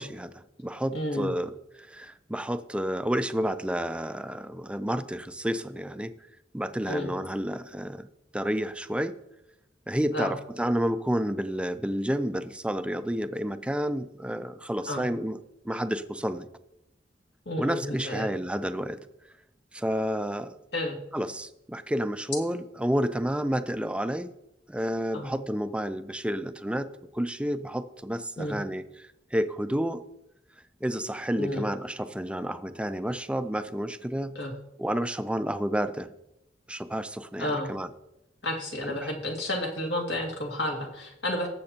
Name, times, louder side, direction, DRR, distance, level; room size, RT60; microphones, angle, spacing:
voice 1, 0.0-6.1 6.5-8.1 8.3-9.1 9.9-15.4 15.6-16.5 17.6-19.0 19.7-20.6 21.1-24.3 24.7-30.0 30.8-34.4 34.8-36.1 36.7-37.9 38.9-39.1, equal, 5° right, 11 dB, 0.5 m, -30 dB
voice 2, 0.9-1.3 6.9-7.1 10.1-10.3 14.9-15.0 17.5-18.3 20.7-21.0 25.1-25.3 28.4-28.6 31.4-31.7 34.4-34.5 37.4-37.7 38.4-41.5, left 1 dB, 70° left, 1 dB, 2.2 m, -31 dB
18.5 x 7.6 x 2.9 m, 0.87 s
head